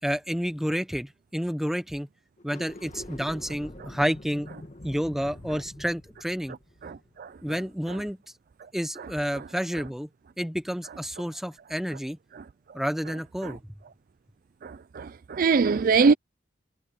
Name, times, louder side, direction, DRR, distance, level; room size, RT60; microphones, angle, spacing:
voice 1, 0.0-2.1 2.4-4.5 4.8-6.6 7.4-8.2 8.7-10.1 10.4-12.2 12.7-13.6, equal, ahead, 1.0 m, -30 dB
sound 1, 2.4-7.7, left 1 dB, 35° left, 1.6 m, -45 dB
voice 2, 6.8-7.3 13.4-13.5 14.6-16.1, right 5 dB, 45° right, 0.4 m, -23 dB
head